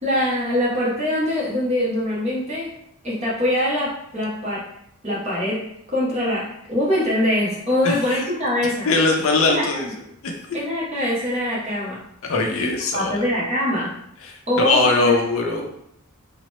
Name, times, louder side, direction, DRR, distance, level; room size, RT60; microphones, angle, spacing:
voice 1, 0.0-2.7 3.0-4.6 5.0-5.6 5.9-8.9 9.5-9.9 10.5-12.0 12.6-13.9 14.5-15.2, left 1 dB, 30° right, -6 dB, 0.9 m, -23 dB
voice 2, 7.8-8.2 8.9-9.9 10.2-10.6 12.3-13.3 14.2-15.7, left 3 dB, 65° left, 2 dB, 0.5 m, -21 dB
2.9 x 2.1 x 3.0 m, 0.75 s
head